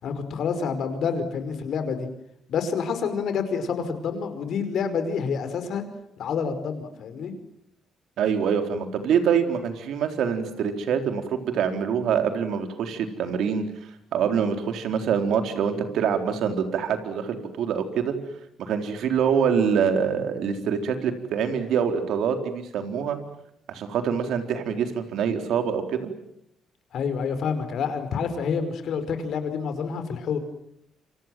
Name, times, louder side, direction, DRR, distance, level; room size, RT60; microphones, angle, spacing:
voice 1, 0.0-2.1 2.5-5.8 6.2-7.3 26.9-30.4, left 6 dB, 70° left, 9 dB, 4.9 m, -28 dB
voice 2, 8.2-13.6 14.1-18.1 18.6-23.2 23.7-26.1, right 7 dB, 80° right, 6 dB, 4.0 m, -25 dB
28.5 x 26.0 x 7.6 m, 0.75 s
cardioid pair, 90°, 0 cm